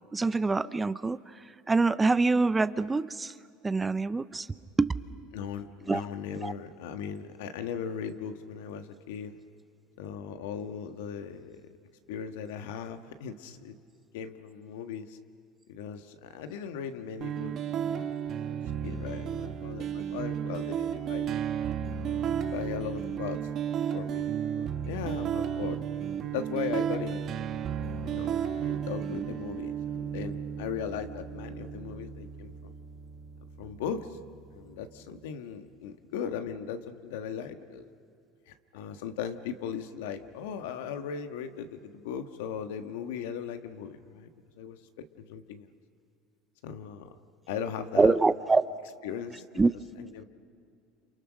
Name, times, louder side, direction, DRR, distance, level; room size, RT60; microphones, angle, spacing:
voice 1, 0.1-1.2 1.7-3.3 3.6-4.5 4.8-4.9 5.9-6.0 6.4-6.5 47.9-48.6 49.6-49.7, right 3 dB, 15° right, 15 dB, 0.6 m, -24 dB
voice 2, 5.3-9.4 10.0-11.7 12.1-13.8 14.1-15.2 15.7-21.4 22.5-23.4 23.7-25.8 26.3-27.2 27.8-32.7 33.6-34.2 34.5-37.8 38.5-44.3 44.5-45.7 46.6-47.2 47.5-48.2 49.0-49.4 50.0-50.2, left 7 dB, 85° left, 7 dB, 1.5 m, -38 dB
sound 1, 17.2-35.2, right 8 dB, 45° right, 1.2 m, -33 dB
29.0 x 28.0 x 6.4 m, 2.5 s
supercardioid pair, 105°, 0 cm